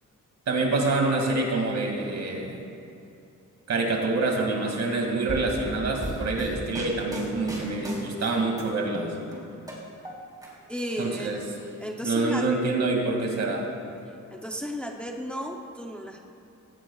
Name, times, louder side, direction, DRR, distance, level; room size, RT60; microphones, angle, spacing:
voice 1, 0.5-2.6 3.7-9.1 11.0-11.4 12.0-13.7, right 3 dB, 60° right, 1 dB, 2.4 m, -26 dB
sound 1, 5.3-8.6 8.9-10.5 10.8-11.7, equal, 10° right, 3.5 m, -37 dB
voice 2, 10.7-11.4 11.8-12.5 14.3-16.2, equal, 5° left, 1 dB, 0.7 m, -34 dB
19.5 x 17.0 x 2.4 m, 2.7 s
wide cardioid pair, 150°, 32 cm